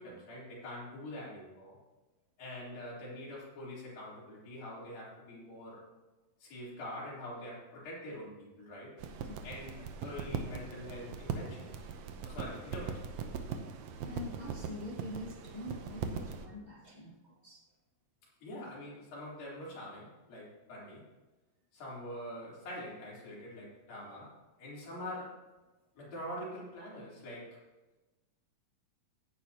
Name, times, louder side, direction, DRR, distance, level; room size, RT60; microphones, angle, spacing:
voice 1, 0.0-1.8 2.4-5.8 6.4-9.0 9.4-11.9 12.2-13.1 18.4-21.1 21.7-25.5 26.0-27.6, left 1 dB, 85° left, -6 dB, 5.5 m, -45 dB
sound 1, 9.0-16.5, right 6 dB, 70° right, 1.7 m, -40 dB
voice 2, 14.0-17.6, left 1 dB, 55° left, -4 dB, 0.4 m, -45 dB
15.5 x 9.5 x 2.9 m, 1.2 s
omnidirectional pair, 4.0 m